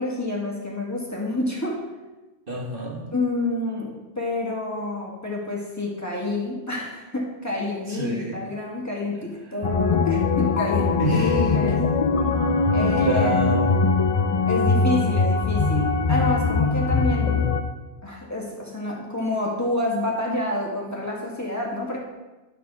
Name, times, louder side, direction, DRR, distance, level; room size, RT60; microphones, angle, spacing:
voice 1, 0.0-1.8 3.1-11.9 12.7-13.3 14.5-17.5 18.0-22.0, left 2 dB, 15° left, -3 dB, 1.8 m, -28 dB
voice 2, 2.5-3.1 7.9-8.4 11.0-11.6 13.0-13.8, right 2 dB, 55° right, 0 dB, 1.4 m, -27 dB
sound 1, 9.6-17.6, left 4 dB, 40° left, 0.5 m, -21 dB
11.5 x 4.4 x 6.0 m, 1.1 s
omnidirectional pair, 1.1 m